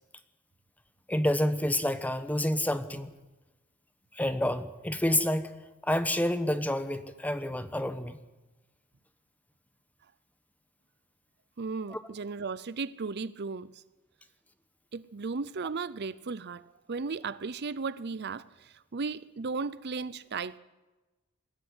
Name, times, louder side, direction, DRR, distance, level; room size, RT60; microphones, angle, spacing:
voice 1, 1.1-3.1 4.1-5.6 5.8-8.2 11.9-12.0, left 1 dB, 5° left, 1.0 m, -28 dB
voice 2, 11.6-13.8 14.9-20.6, right 4 dB, 50° right, 0.6 m, -35 dB
21.5 x 12.5 x 9.8 m
head